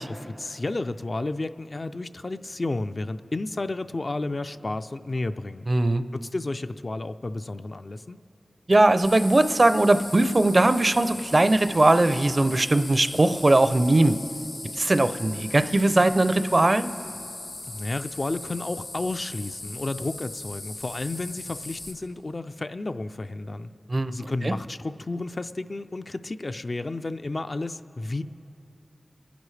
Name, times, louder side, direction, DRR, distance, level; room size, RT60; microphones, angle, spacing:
voice 1, 0.1-5.7 6.1-8.2 17.7-23.7 24.1-28.2, left 2 dB, 50° left, 10 dB, 0.3 m, -32 dB
voice 2, 5.7-6.0 8.7-14.2 14.7-16.9 23.9-24.1 24.4-24.5, right 2 dB, 45° right, 11 dB, 0.4 m, -20 dB
sound 1, 9.0-21.9, left 2 dB, 90° left, 1.8 m, -39 dB
27.5 x 10.0 x 3.2 m, 2.9 s
wide cardioid pair, 60°, 0 cm